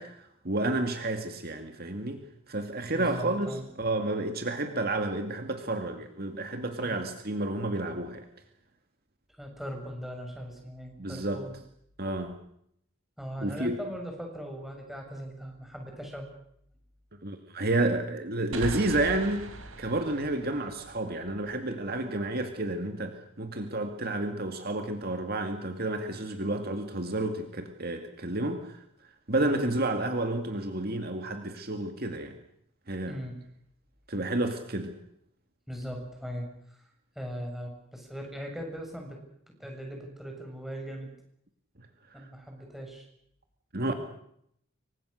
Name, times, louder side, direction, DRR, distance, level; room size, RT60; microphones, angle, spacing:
voice 1, 0.0-3.5 3.8-8.3 11.0-11.4 12.0-12.3 13.4-13.8 17.2-19.5 19.8-28.8 29.3-32.3 32.9-33.2 34.1-34.9 43.7-43.9, right 2 dB, 45° right, 6 dB, 2.3 m, -30 dB
voice 2, 2.9-3.6 6.8-7.1 9.4-11.6 13.2-16.3 29.4-29.5 33.0-33.4 35.7-36.8 37.1-39.2 39.5-41.1 42.1-43.1 43.9-44.0, equal, ahead, 1 dB, 6.6 m, -39 dB
sound 1, 18.5-22.0, right 2 dB, 75° right, 4.1 m, -40 dB
27.5 x 24.5 x 6.6 m, 0.72 s
head